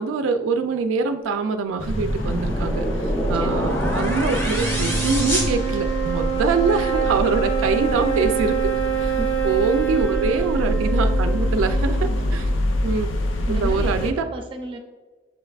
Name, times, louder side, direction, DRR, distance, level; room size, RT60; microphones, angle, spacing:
voice 1, 0.0-8.7 9.0-9.2 9.4-12.5 12.8-13.1 13.5-14.3, right 4 dB, 85° right, 8 dB, 0.3 m, -24 dB
sound 1, 1.8-14.1, left 1 dB, 70° left, 0.4 m, -25 dB
sound 2, 1.8-6.4, equal, 15° left, 0.8 m, -27 dB
sound 3, 3.2-12.7, right 9 dB, 90° left, 1.2 m, -27 dB
voice 2, 3.3-3.9 9.2-9.5 10.3-10.5 11.6-12.5 13.5-14.8, right 1 dB, 25° right, 2 dB, 0.5 m, -35 dB
6.4 x 3.3 x 2.3 m, 1.3 s
head